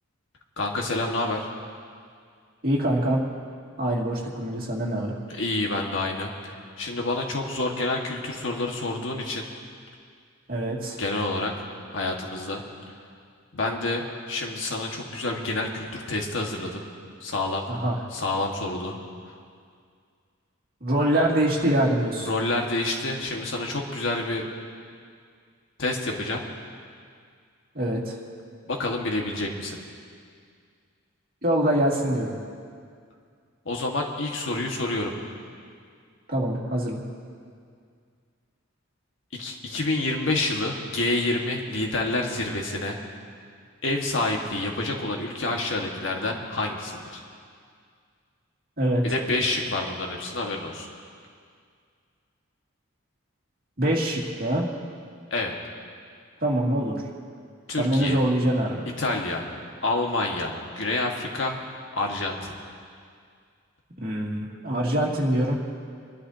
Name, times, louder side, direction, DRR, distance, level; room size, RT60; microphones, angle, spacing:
voice 1, 0.6-1.5 5.4-9.5 11.0-11.5 11.9-12.6 13.5-16.8 17.2-17.6 18.1-19.0 22.2-24.4 25.8-26.4 28.7-29.8 33.6-35.1 39.3-43.0 43.8-47.2 49.0-50.9 55.3-55.5 57.7-58.2 59.0-59.4 59.8-61.6 62.0-62.5, left 2 dB, 65° left, 1 dB, 1.6 m, -28 dB
voice 2, 2.6-3.2 3.8-5.2 10.5-11.0 17.7-18.0 20.8-22.3 27.7-28.2 31.4-32.3 36.3-37.0 48.8-49.0 53.8-54.7 56.4-57.0 57.8-58.8 64.0-65.5, right 1 dB, 45° right, -3 dB, 2.3 m, -24 dB
28.0 x 12.0 x 2.8 m, 2.2 s
head